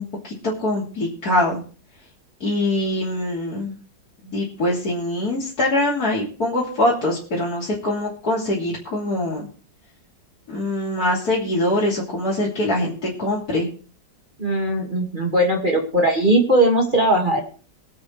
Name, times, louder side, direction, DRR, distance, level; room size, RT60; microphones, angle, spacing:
voice 1, 0.0-1.6 2.4-3.8 4.3-9.5 10.5-12.9 13.2-13.7, left 1 dB, 55° left, -6 dB, 3.5 m, -23 dB
voice 2, 14.4-17.4, right 1 dB, 25° right, 1 dB, 2.2 m, -19 dB
23.0 x 7.9 x 3.3 m, 0.40 s
omnidirectional pair, 1.9 m